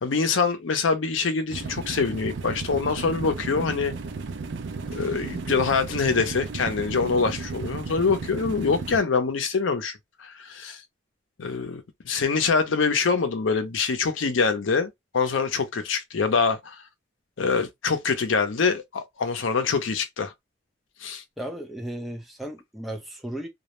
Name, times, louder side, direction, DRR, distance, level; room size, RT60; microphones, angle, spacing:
voice 1, 0.0-3.9 4.9-10.8 11.4-16.8 17.4-20.3 21.0-21.2, left 5 dB, 90° left, 0.6 m, -25 dB
sound 1, 1.5-9.0, right 4 dB, 65° right, 0.4 m, -34 dB
voice 2, 21.4-23.5, right 1 dB, ahead, 0.4 m, -35 dB
2.3 x 2.0 x 2.9 m
head